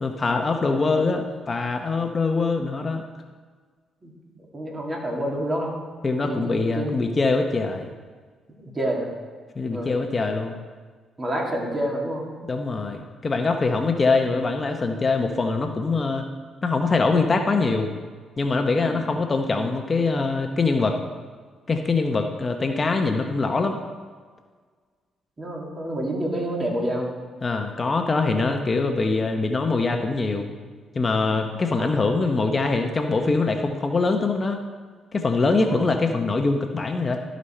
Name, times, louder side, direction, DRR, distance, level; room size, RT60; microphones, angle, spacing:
voice 1, 0.0-3.0 6.0-7.9 9.6-10.5 12.4-16.3 16.6-17.9 18.4-21.0 21.7-23.8 27.4-30.5 30.9-34.6 35.1-37.2, left 3 dB, 35° left, 5 dB, 0.7 m, -23 dB
voice 2, 4.0-5.7 6.2-7.0 8.6-9.1 9.6-9.9 11.2-12.3 18.8-19.1 25.4-27.1 31.2-31.5 31.7-32.0 35.5-35.9, right 1 dB, 30° right, -1 dB, 2.2 m, -29 dB
12.5 x 5.1 x 4.3 m, 1.5 s
cardioid pair, 80°, 0 cm